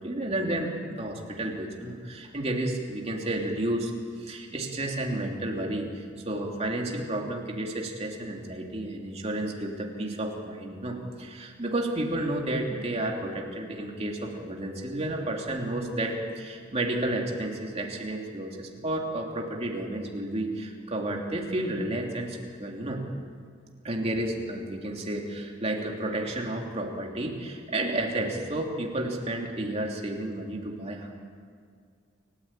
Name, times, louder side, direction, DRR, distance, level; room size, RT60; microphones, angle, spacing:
voice 1, 0.0-3.9 4.2-23.0 23.8-31.1, right 1 dB, 30° right, 0 dB, 3.2 m, -31 dB
29.0 x 14.0 x 9.1 m, 2.2 s
head